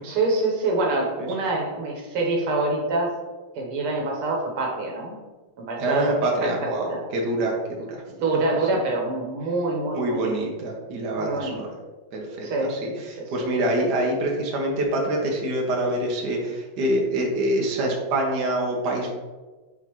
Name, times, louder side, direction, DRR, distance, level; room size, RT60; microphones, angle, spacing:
voice 1, 0.0-3.1 3.6-5.2 5.6-6.1 6.4-6.5 6.8-7.0 8.2-10.4 11.2-11.6 12.4-13.3, right 2 dB, 60° right, -1 dB, 1.6 m, -26 dB
voice 2, 5.8-8.0 9.9-11.7 12.1-19.1, right 1 dB, 90° right, -1 dB, 0.9 m, -25 dB
8.0 x 3.9 x 3.0 m, 1.3 s
omnidirectional pair, 3.4 m